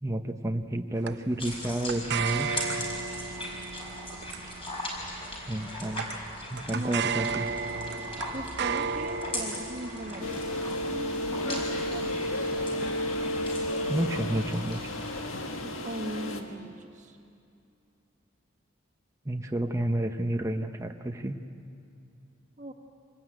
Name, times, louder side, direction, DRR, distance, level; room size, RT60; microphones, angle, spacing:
voice 1, 0.0-2.5 5.5-6.0 6.5-7.4 13.9-14.8 19.2-21.4, right 1 dB, 15° right, 4 dB, 0.8 m, -30 dB
sound 1, 1.1-13.6, right 6 dB, 55° right, 0.7 m, -36 dB
sound 2, 1.4-15.3, left 1 dB, 25° left, 5.0 m, -39 dB
voice 2, 6.7-7.2 8.3-12.6 15.6-17.2 22.6-22.7, right 1 dB, 35° right, 3 dB, 1.7 m, -39 dB
sound 3, 10.2-16.4, left 1 dB, 85° left, 1.8 m, -32 dB
25.0 x 19.0 x 9.1 m, 2.6 s
head